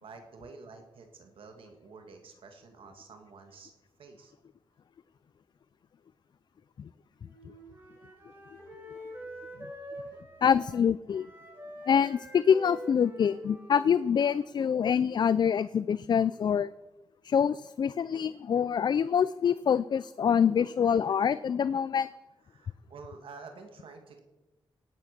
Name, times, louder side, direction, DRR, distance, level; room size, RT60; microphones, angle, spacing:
voice 1, 0.0-3.7 4.0-4.3 7.7-7.9 8.6-10.4 22.5-24.2, right 4 dB, 85° right, 5 dB, 2.0 m, -50 dB
Wind instrument woodwind instrument, 7.2-15.0, equal, 20° right, 4.1 m, -46 dB
voice 2, 10.4-11.3 11.9-16.7 17.2-22.1, left 7 dB, 55° left, 16 dB, 0.4 m, -25 dB
18.0 x 8.3 x 6.6 m, 1.1 s
wide cardioid pair, 120°, 9 cm